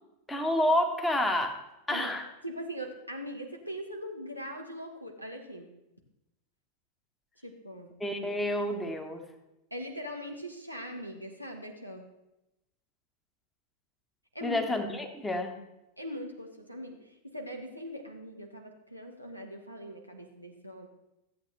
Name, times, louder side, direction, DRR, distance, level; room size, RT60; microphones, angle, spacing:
voice 1, 0.3-2.3 8.0-9.2 14.4-15.6, left 1 dB, 10° left, 4 dB, 1.2 m, -29 dB
voice 2, 2.4-5.7 7.4-7.9 9.7-12.1 14.3-14.6 16.0-20.9, equal, 90° left, 2 dB, 1.3 m, -41 dB
14.0 x 8.3 x 3.3 m, 0.94 s
figure-of-eight pair, 90°, 0 cm